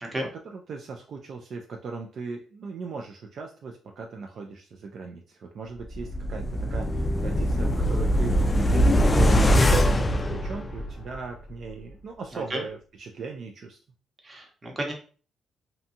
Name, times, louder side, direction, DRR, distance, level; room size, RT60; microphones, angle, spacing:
voice 1, 0.4-13.8, right 4 dB, 60° right, 2 dB, 0.3 m, -38 dB
sound 1, 5.9-11.1 11.5-11.6, equal, 25° left, 0.3 m, -22 dB
voice 2, 14.2-14.9, right 1 dB, 25° right, 2 dB, 0.8 m, -32 dB
2.6 x 2.2 x 2.7 m, 0.40 s
cardioid pair, 90°, 0 cm